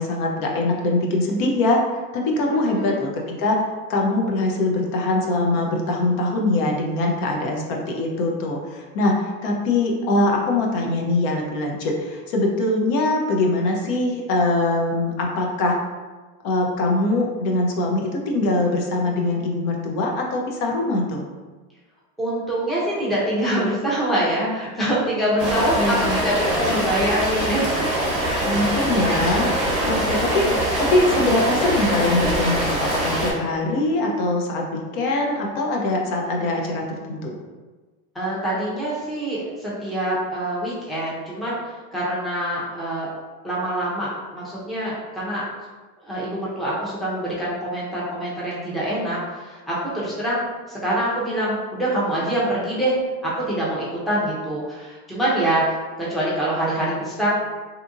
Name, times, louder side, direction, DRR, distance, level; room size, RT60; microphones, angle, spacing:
voice 1, 0.0-1.8 2.1-15.8 16.4-21.3 25.4-26.2 28.4-29.5 29.8-37.4, left 2 dB, 70° left, 0 dB, 0.7 m, -22 dB
voice 2, 2.5-3.0 22.2-27.7 30.1-30.5 38.1-43.1 43.4-45.4 46.0-53.0 53.2-57.3, right 1 dB, ahead, -7 dB, 0.5 m, -25 dB
Rain, 25.4-33.3, right 1 dB, 15° right, 1.0 m, -23 dB
2.8 x 2.5 x 2.4 m, 1.3 s
supercardioid pair, 125°, 43 cm